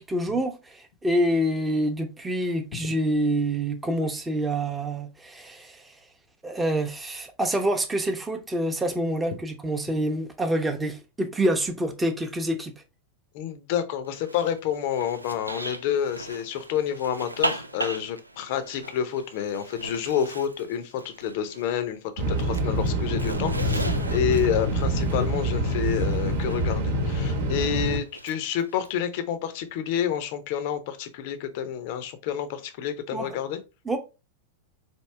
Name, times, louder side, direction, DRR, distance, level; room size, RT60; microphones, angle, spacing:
voice 1, 0.0-6.0 6.4-12.7 33.1-33.4 33.9-34.0, right 1 dB, 10° right, 0.7 m, -27 dB
voice 2, 13.3-33.6, left 9 dB, 50° left, 0.6 m, -29 dB
Zipper (clothing), 14.1-21.9 22.2-26.6 28.0-28.9, right 2 dB, 85° right, 0.3 m, -37 dB
sound 1, 22.2-28.0, right 1 dB, 55° right, 1.0 m, -26 dB
4.5 x 2.7 x 3.2 m
figure-of-eight pair, 90°, 0 cm